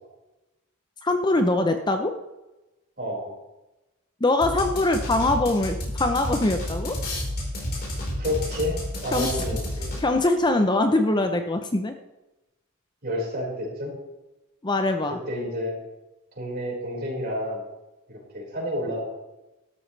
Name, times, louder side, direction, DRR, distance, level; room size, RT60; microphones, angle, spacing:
voice 1, 1.0-2.1 4.2-7.0 9.1-9.3 10.0-11.9 14.6-15.2, left 2 dB, 20° left, 6 dB, 0.7 m, -23 dB
voice 2, 3.0-3.3 8.2-8.8 9.0-9.9 13.0-13.9 15.1-15.8 16.3-17.6 18.1-19.0, left 1 dB, 45° right, -3 dB, 5.1 m, -30 dB
sound 1, 4.4-10.3, left 1 dB, 45° left, 4.5 m, -31 dB
13.0 x 12.5 x 3.3 m, 1.0 s
head